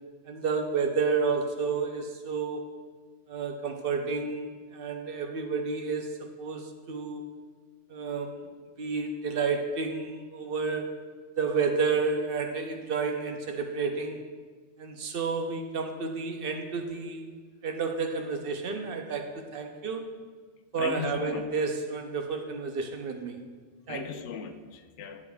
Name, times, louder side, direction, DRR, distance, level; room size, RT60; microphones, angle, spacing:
voice 1, 0.3-2.6 3.3-6.1 6.4-7.2 7.9-8.4 8.8-10.9 11.4-14.2 14.8-17.3 17.6-20.0 20.7-23.4 23.9-24.0, right 4 dB, 60° right, 5 dB, 0.8 m, -30 dB
voice 2, 20.8-21.5 23.9-25.2, left 7 dB, 85° left, 7 dB, 0.9 m, -37 dB
9.6 x 6.9 x 2.3 m, 1.4 s
omnidirectional pair, 1.2 m